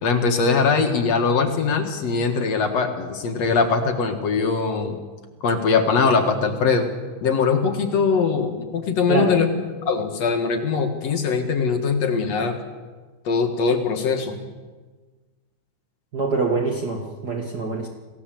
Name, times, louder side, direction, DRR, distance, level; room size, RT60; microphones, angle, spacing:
voice 1, 0.0-5.0 5.4-6.9 7.2-9.5 9.9-12.6 13.2-14.4, left 5 dB, 50° left, 5 dB, 2.1 m, -21 dB
voice 2, 16.1-17.9, right 3 dB, 60° right, 1 dB, 1.0 m, -24 dB
28.0 x 17.5 x 7.7 m, 1.4 s
omnidirectional pair, 5.1 m